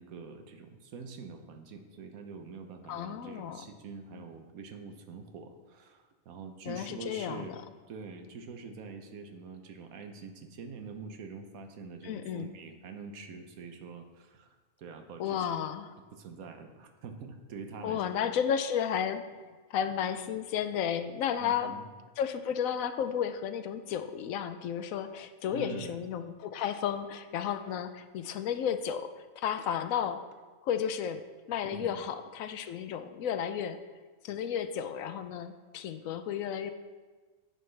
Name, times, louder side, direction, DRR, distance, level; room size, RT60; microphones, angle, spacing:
voice 1, 0.0-7.6 7.9-15.5 16.1-18.1 21.4-21.9 25.5-26.0 31.7-32.1, right 4 dB, 85° right, 6 dB, 1.3 m, -45 dB
voice 2, 2.9-3.6 6.7-7.6 12.0-12.5 15.2-15.9 17.8-21.7 22.2-30.2 30.6-31.2 31.5-33.8 34.2-36.7, left 8 dB, 75° left, 10 dB, 1.0 m, -33 dB
10.0 x 7.7 x 3.3 m, 1.3 s
omnidirectional pair, 1.4 m